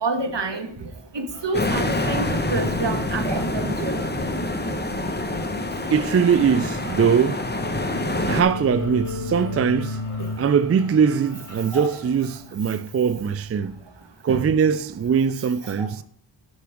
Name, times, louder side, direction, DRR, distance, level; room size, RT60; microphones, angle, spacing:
voice 1, 0.0-0.9 1.1-4.0 11.7-11.9 14.3-14.4 15.8-15.9, right 3 dB, 60° right, 1.6 m, -28 dB
sound 1, 1.3-12.4, left 2 dB, 35° left, 2.9 m, -45 dB
sound 2, 1.5-8.4, left 1 dB, 20° left, 1.3 m, -26 dB
voice 2, 5.9-7.4 8.3-10.0 10.4-13.8 14.2-16.0, right 7 dB, 35° right, 0.4 m, -21 dB
sound 3, 7.4-13.0, left 3 dB, 85° left, 1.0 m, -34 dB
10.5 x 6.1 x 3.6 m
cardioid pair, 50°, 48 cm